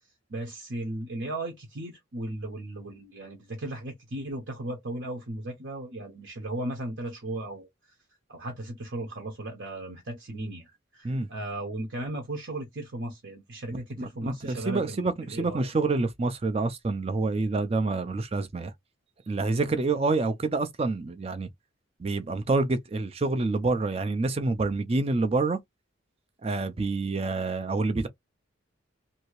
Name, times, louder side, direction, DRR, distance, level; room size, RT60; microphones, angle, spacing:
voice 1, 0.3-7.7 8.3-15.7, right 1 dB, 60° right, 0.8 m, -36 dB
voice 2, 14.0-18.7 19.3-21.5 22.0-25.6 26.4-28.1, right 3 dB, 30° right, 0.4 m, -27 dB
2.7 x 2.7 x 3.0 m
head